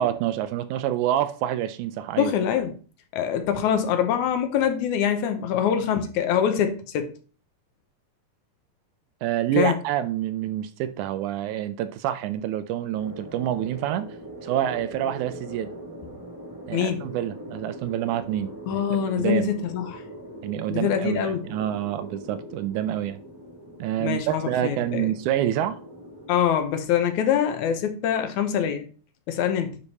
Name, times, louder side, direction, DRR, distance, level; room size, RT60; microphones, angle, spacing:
voice 1, 0.0-2.3 9.2-14.1 14.4-15.7 16.7-18.8 19.2-19.5 20.4-23.2 23.8-25.8, right 11 dB, 80° right, 1.9 m, -27 dB
voice 2, 2.2-2.7 3.1-7.1 9.6-9.8 16.7-17.1 18.7-20.0 20.7-21.4 24.0-25.1 26.3-28.9 29.3-29.8, left 9 dB, 75° left, 2.1 m, -24 dB
sound 1, 12.9-26.4, equal, 15° right, 1.0 m, -41 dB
9.8 x 3.5 x 4.1 m
omnidirectional pair, 3.6 m